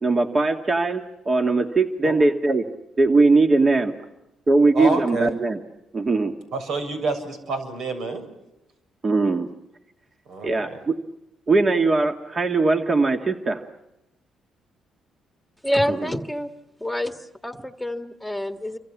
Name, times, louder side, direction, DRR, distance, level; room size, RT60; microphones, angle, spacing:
voice 1, 0.0-2.6 3.0-3.9 4.5-5.6 5.9-6.3 9.0-9.5 10.4-10.9 11.5-13.6 15.9-16.0, right 3 dB, 30° right, 4 dB, 1.9 m, -20 dB
voice 2, 4.7-5.3 6.5-8.2 10.3-10.8, right 3 dB, 80° right, 6 dB, 7.2 m, -28 dB
voice 3, 15.6-16.5 16.8-17.2 17.4-18.8, equal, ahead, 6 dB, 1.8 m, -26 dB
29.5 x 25.0 x 7.3 m, 0.92 s
cardioid pair, 90°, 0 cm